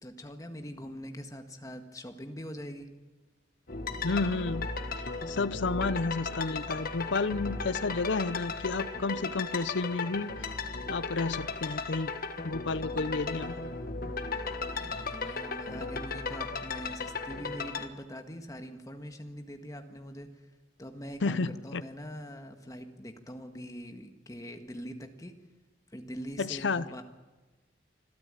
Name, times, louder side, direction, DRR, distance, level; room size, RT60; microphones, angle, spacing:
voice 1, 0.0-2.9 14.7-20.5 20.8-25.3 25.9-27.0, equal, 20° left, 5 dB, 1.7 m, -43 dB
sound 1, 3.7-17.9, left 4 dB, 50° left, 1.4 m, -36 dB
voice 2, 4.0-4.7 5.0-10.5 10.9-12.1 12.4-13.6 21.2-21.8 26.4-26.9, left 3 dB, 70° left, 16 dB, 0.6 m, -31 dB
26.0 x 13.5 x 9.0 m, 1.2 s
head